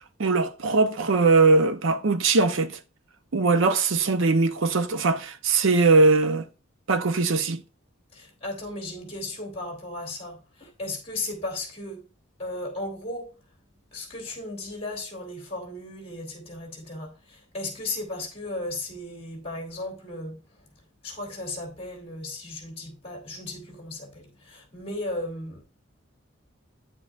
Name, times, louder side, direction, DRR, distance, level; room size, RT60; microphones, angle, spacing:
voice 1, 0.2-2.8 3.3-6.4 6.9-7.6, right 3 dB, 65° right, 0.7 m, -21 dB
voice 2, 8.1-12.0 12.4-13.3 13.9-20.4 21.0-25.6, left 2 dB, 30° left, 2.6 m, -35 dB
9.7 x 7.3 x 2.4 m
head